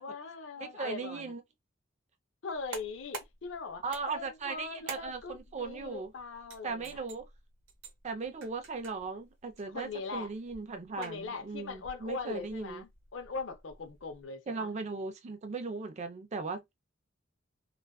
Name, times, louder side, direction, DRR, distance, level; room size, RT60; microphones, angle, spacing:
voice 1, 0.0-1.3 2.4-7.0 9.7-10.3 11.0-14.7, left 4 dB, 75° left, 0.5 m, -41 dB
voice 2, 0.6-1.4 3.8-6.1 6.6-7.3 8.0-12.9 14.5-16.7, right 4 dB, 35° right, 0.4 m, -38 dB
sound 1, 2.5-14.3, right 4 dB, 80° right, 0.7 m, -51 dB
2.4 x 2.3 x 2.3 m
head